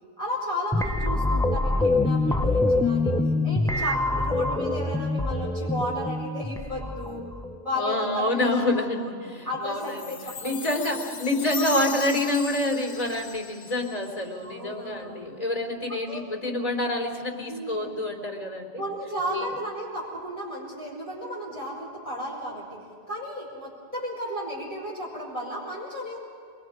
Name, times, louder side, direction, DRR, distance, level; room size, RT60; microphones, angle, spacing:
voice 1, 0.2-3.2 3.4-7.2 7.6-9.1 9.4-10.8 11.5-12.0 14.3-15.3 15.9-16.2 17.5-18.0 18.8-22.8 23.1-26.2, equal, 25° right, -8 dB, 4.7 m, -34 dB
sound 1, 0.7-7.6, left 2 dB, 5° left, 0.4 m, -25 dB
voice 2, 7.7-10.2 10.4-18.8 19.3-19.5, left 1 dB, 25° left, -2 dB, 3.6 m, -27 dB
Chime, 9.8-14.3, left 5 dB, 40° left, 1.3 m, -38 dB
27.5 x 22.5 x 5.1 m, 2.1 s
omnidirectional pair, 1.3 m